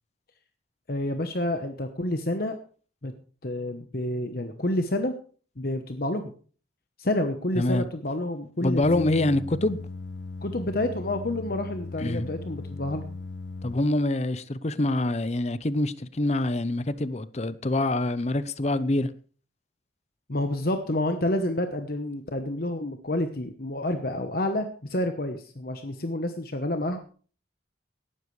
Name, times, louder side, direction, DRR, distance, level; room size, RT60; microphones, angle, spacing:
voice 1, 0.9-2.5 3.0-3.1 3.4-5.2 5.6-6.2 7.0-9.3 10.4-13.1 20.3-27.0, left 1 dB, 55° left, 1.1 m, -29 dB
voice 2, 8.6-9.8 12.0-12.3 13.6-19.1, left 2 dB, 35° left, 0.7 m, -25 dB
sound 1, 8.8-13.7, left 3 dB, 80° left, 1.2 m, -38 dB
17.5 x 12.5 x 3.3 m
head